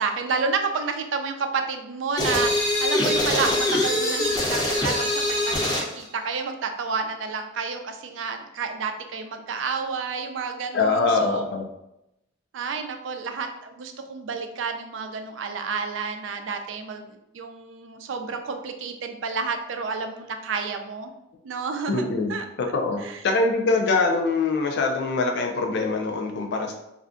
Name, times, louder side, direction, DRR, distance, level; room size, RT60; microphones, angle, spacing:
voice 1, 0.0-11.4 12.5-21.1 21.4-22.5 23.0-23.2, right 5 dB, 80° right, 6 dB, 0.4 m, -30 dB
sound 1, 2.2-5.9, left 1 dB, 20° left, 0.7 m, -23 dB
voice 2, 10.7-11.7 21.9-22.3 22.6-26.7, left 3 dB, 65° left, 4 dB, 0.4 m, -23 dB
2.5 x 2.2 x 3.6 m, 0.86 s
head